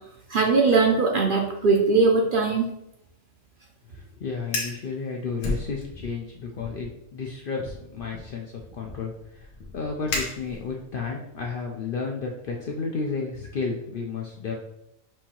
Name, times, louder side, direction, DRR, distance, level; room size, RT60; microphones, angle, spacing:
voice 1, 0.3-2.7, right 4 dB, 55° right, 0 dB, 0.6 m, -20 dB
voice 2, 4.2-8.5 8.7-9.1 9.4-9.5 9.7-14.5, left 4 dB, 60° left, 0 dB, 0.6 m, -32 dB
Fire, 4.4-4.8 5.4-6.2 6.5-6.9 7.6-10.9, left 2 dB, 75° left, 1.3 m, -34 dB
6.1 x 2.7 x 2.9 m, 0.82 s
omnidirectional pair, 1.3 m